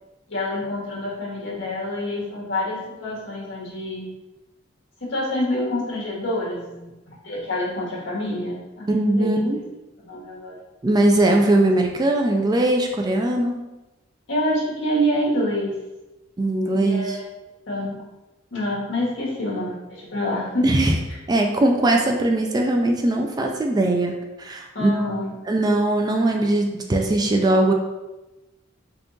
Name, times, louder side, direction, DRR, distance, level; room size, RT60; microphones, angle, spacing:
voice 1, 0.3-4.1 5.0-9.4 10.0-10.6 14.3-15.7 16.7-17.2 17.7-18.0 18.5-20.7 21.1-21.2 24.7-25.3, left 1 dB, 70° left, -5 dB, 1.4 m, -27 dB
voice 2, 8.9-9.6 10.8-13.6 16.4-17.2 20.6-21.0 21.3-24.1 24.4-24.9 25.5-27.7, right 1 dB, 20° right, 2 dB, 0.3 m, -20 dB
3.9 x 3.5 x 2.6 m, 1.0 s
head